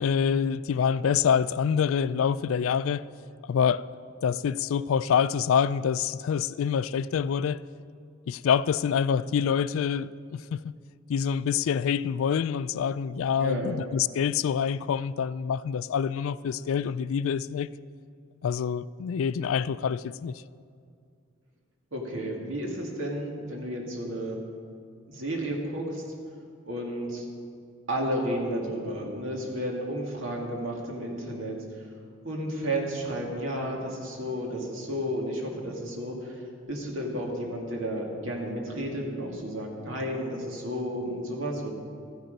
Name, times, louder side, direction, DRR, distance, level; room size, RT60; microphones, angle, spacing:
voice 1, 0.0-3.0 3.4-3.8 4.2-7.6 8.3-10.7 11.1-17.7 18.4-20.4, left 7 dB, 75° left, 0.3 m, -26 dB
voice 2, 13.4-13.8 21.9-24.4 25.1-26.0 26.6-27.3 27.9-31.6 32.2-41.7, equal, 70° right, 2.2 m, -32 dB
13.5 x 10.5 x 5.3 m
head